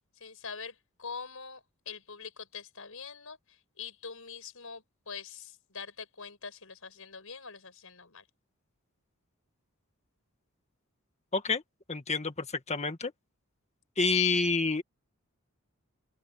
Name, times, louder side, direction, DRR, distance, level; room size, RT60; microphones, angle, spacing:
voice 1, 0.2-3.4 3.8-8.2, left 5 dB, 70° left, 7.3 m, -44 dB
voice 2, 11.3-11.6 11.9-13.1 14.0-14.8, left 4 dB, 30° left, 1.8 m, -28 dB
open air
head